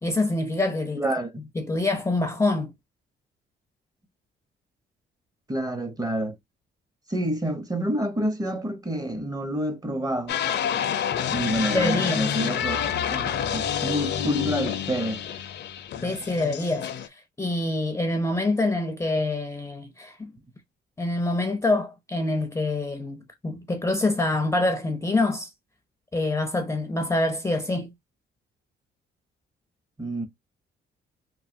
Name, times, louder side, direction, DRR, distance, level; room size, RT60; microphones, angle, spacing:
voice 1, 0.0-1.1 1.6-2.7 11.7-12.2 16.0-16.9 17.4-20.3 21.0-25.5 26.1-27.9, left 2 dB, 15° left, 0.5 m, -25 dB
voice 2, 1.0-1.3 5.5-6.3 7.1-10.4 11.3-15.2 30.0-30.3, right 1 dB, 20° right, 0.8 m, -28 dB
sound 1, 10.3-17.1, left 9 dB, 60° left, 0.5 m, -28 dB
3.1 x 2.3 x 2.6 m
cardioid pair, 90°, 20 cm